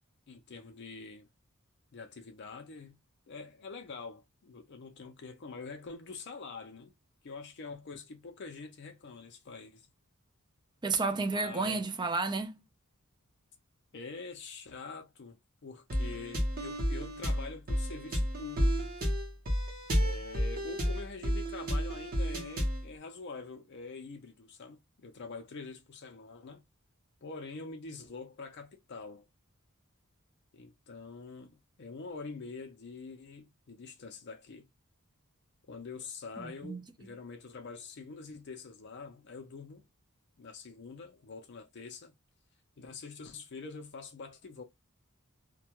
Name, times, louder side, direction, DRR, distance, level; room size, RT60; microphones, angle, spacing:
voice 1, 0.3-1.3 1.9-3.0 3.3-6.9 7.2-9.9 11.1-11.8 13.9-18.9 20.0-26.6 27.2-29.3 30.5-34.7 35.7-39.9 40.4-42.1 42.8-44.6, left 4 dB, 50° left, 0.5 m, -45 dB
voice 2, 10.8-12.6 36.4-36.8, right 3 dB, 20° right, 0.3 m, -32 dB
sound 1, 15.9-22.9, equal, 40° right, 0.8 m, -31 dB
2.2 x 2.2 x 2.8 m
head